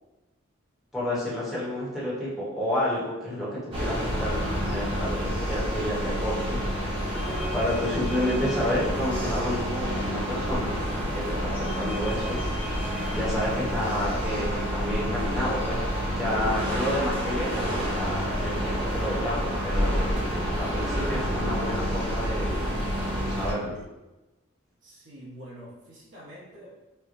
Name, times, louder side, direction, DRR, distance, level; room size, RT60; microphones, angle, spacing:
voice 1, 0.9-6.6 7.5-10.7 11.1-12.4 13.1-15.8 16.1-20.1 20.5-22.6 23.2-23.8, left 1 dB, ahead, -9 dB, 1.0 m, -30 dB
sound 1, 3.7-23.5, equal, 25° right, 0.7 m, -29 dB
sound 2, 4.2-23.9, right 3 dB, 90° right, 0.3 m, -44 dB
sound 3, 13.1-22.7, left 1 dB, 35° left, 0.4 m, -45 dB
voice 2, 24.8-26.8, equal, 60° right, -5 dB, 1.0 m, -46 dB
4.4 x 2.2 x 2.5 m, 1.1 s
head